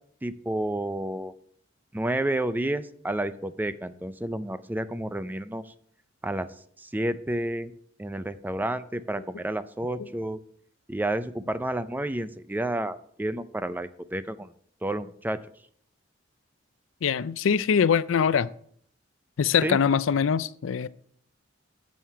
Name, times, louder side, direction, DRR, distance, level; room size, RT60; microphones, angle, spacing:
voice 1, 0.2-1.3 1.9-5.6 6.2-6.5 6.8-7.7 8.0-10.4 10.9-14.5 14.8-15.4 19.6-19.8, right 1 dB, 10° right, 0.4 m, -30 dB
voice 2, 17.0-18.5 19.4-20.9, left 7 dB, 80° left, 0.4 m, -23 dB
9.3 x 6.4 x 5.6 m
head